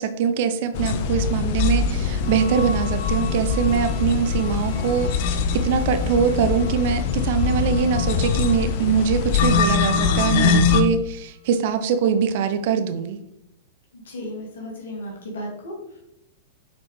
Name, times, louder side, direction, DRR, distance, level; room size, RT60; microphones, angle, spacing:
voice 1, 0.0-13.2, right 7 dB, 55° right, 9 dB, 0.7 m, -23 dB
sound 1, 0.7-10.8, left 6 dB, 55° left, 0.5 m, -23 dB
sound 2, 2.2-11.6 12.0-12.1, left 3 dB, 30° left, 1.6 m, -41 dB
voice 2, 13.9-16.0, left 1 dB, 75° left, -2 dB, 2.0 m, -35 dB
7.0 x 4.3 x 3.2 m, 0.81 s
hypercardioid pair, 105°, 0 cm